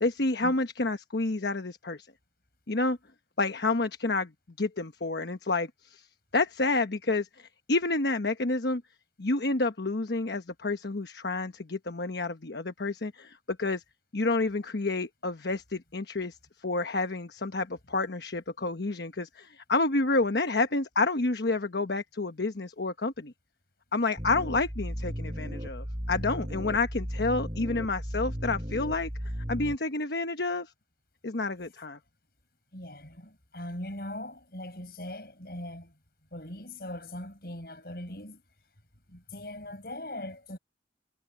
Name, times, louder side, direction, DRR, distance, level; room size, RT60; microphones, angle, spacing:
voice 1, 0.0-2.1 2.7-3.0 3.4-4.3 4.6-6.1 6.3-8.8 9.2-13.8 14.1-16.4 16.6-23.3 23.9-29.1 29.5-30.7 31.2-32.0, left 3 dB, 75° left, 1.1 m, -29 dB
sound 1, 24.2-29.8, equal, 30° right, 5.3 m, -35 dB
voice 2, 32.7-35.9 36.3-38.4 39.1-40.6, left 1 dB, 60° left, 7.5 m, -40 dB
head